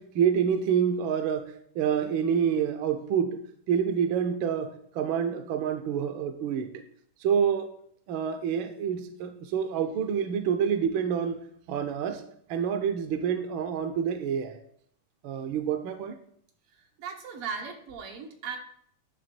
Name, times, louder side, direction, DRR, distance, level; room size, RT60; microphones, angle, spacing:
voice 1, 0.0-3.4 3.7-6.7 7.2-7.7 8.1-11.4 11.7-12.2 12.5-14.6 15.2-16.2, right 7 dB, 75° right, 7 dB, 1.5 m, -27 dB
voice 2, 17.0-18.6, right 5 dB, 90° right, 3 dB, 2.2 m, -37 dB
10.5 x 3.5 x 6.8 m, 0.65 s
omnidirectional pair, 2.4 m